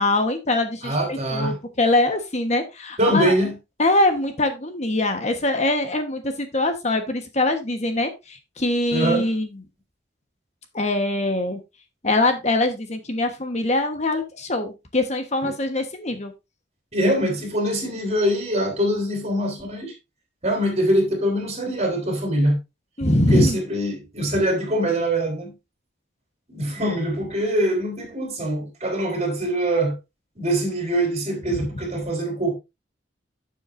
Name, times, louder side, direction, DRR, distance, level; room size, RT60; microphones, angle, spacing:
voice 1, 0.0-3.3 3.8-9.5 10.7-11.6 12.0-16.3 23.0-23.6 31.5-31.6, left 2 dB, 35° left, 1.2 m, -23 dB
voice 2, 0.8-1.5 3.0-3.5 8.9-9.3 15.4-15.5 16.9-19.9 20.4-22.6 23.3-25.5 26.5-29.9 30.4-32.5, right 1 dB, 35° right, 4.1 m, -23 dB
12.0 x 7.1 x 2.6 m
head